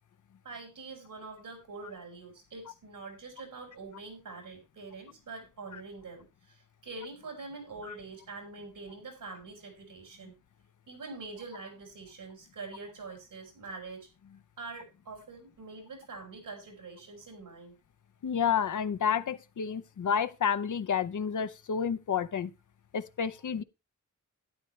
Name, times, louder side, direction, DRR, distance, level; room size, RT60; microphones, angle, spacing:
voice 1, 0.4-10.4 10.9-14.1 14.6-17.7 23.2-23.5, right 3 dB, 90° right, 5.3 m, -45 dB
voice 2, 18.2-22.5 22.9-23.6, left 7 dB, 75° left, 0.8 m, -30 dB
12.5 x 10.5 x 3.2 m
wide cardioid pair, 80°, 31 cm